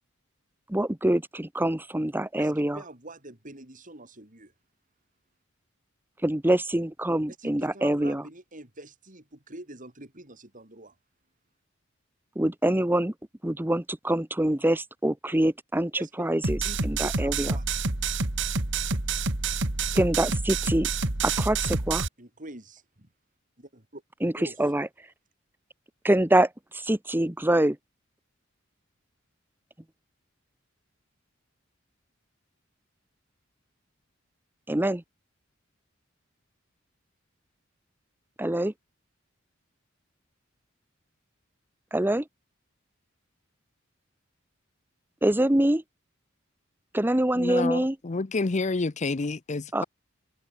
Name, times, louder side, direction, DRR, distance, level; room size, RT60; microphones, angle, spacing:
voice 1, 0.7-2.8 6.2-8.2 12.4-13.1 13.4-15.9 16.2-16.6 16.8-17.5 19.9-20.9 21.2-22.0 24.2-24.3 24.6-24.9 26.0-26.5 26.7-27.8 34.7-35.0 38.4-38.7 41.9-42.2 45.2-45.8 46.9-48.0 49.7-49.8, right 1 dB, 10° right, 1.0 m, -25 dB
voice 2, 2.4-4.5 7.4-11.0 16.0-16.3 16.6-17.8 22.2-23.1 23.6-24.0 24.4-24.6, right 2 dB, 40° right, 5.4 m, -45 dB
sound 1, 16.4-22.1, right 4 dB, 65° right, 2.3 m, -28 dB
voice 3, 47.4-49.8, left 3 dB, 35° left, 0.7 m, -29 dB
head